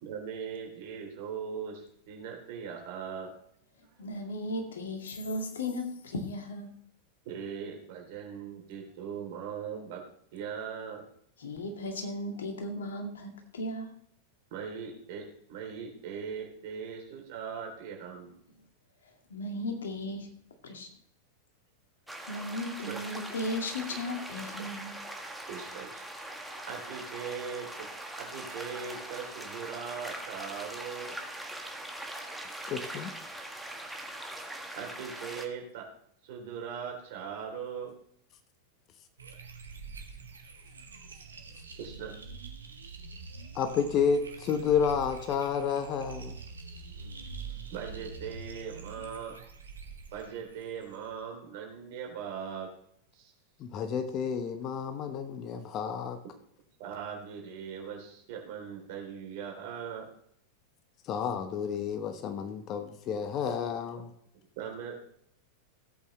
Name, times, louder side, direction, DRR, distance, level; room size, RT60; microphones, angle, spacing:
voice 1, 0.0-3.3 7.3-10.1 10.3-11.1 14.5-18.4 22.9-23.0 25.5-26.0 26.7-31.2 34.7-35.9 36.2-37.9 41.8-42.1 47.4-49.4 50.1-52.7 53.1-53.3 56.8-60.1 64.6-65.0, right 7 dB, 50° right, 1 dB, 3.4 m, -40 dB
voice 2, 4.0-6.7 11.4-13.9 19.3-20.3 20.6-20.9 22.3-25.0, left 1 dB, 65° left, 3 dB, 2.2 m, -36 dB
sound 1, 22.1-35.5, right 1 dB, ahead, 1.7 m, -41 dB
voice 3, 32.7-33.1 43.5-46.4 53.6-56.2 61.0-64.1, left 7 dB, 35° left, 8 dB, 1.1 m, -30 dB
sound 2, 39.2-51.2, right 5 dB, 70° right, 1.6 m, -45 dB
17.0 x 8.6 x 3.3 m, 0.69 s
figure-of-eight pair, 90°, 0 cm